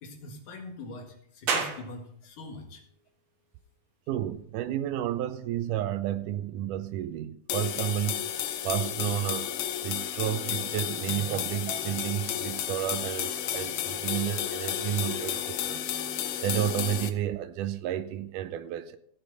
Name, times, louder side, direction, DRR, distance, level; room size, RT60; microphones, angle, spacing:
voice 1, 0.0-2.8, left 2 dB, 70° left, 3.2 m, -43 dB
sound 1, 1.5-14.6, right 5 dB, 50° right, 1.8 m, -42 dB
voice 2, 4.1-8.3 8.6-9.5 9.8-19.0, right 11 dB, 85° right, 2.1 m, -31 dB
sound 2, 7.5-17.1, left 10 dB, 90° left, 2.5 m, -32 dB
16.5 x 6.8 x 4.0 m
omnidirectional pair, 3.8 m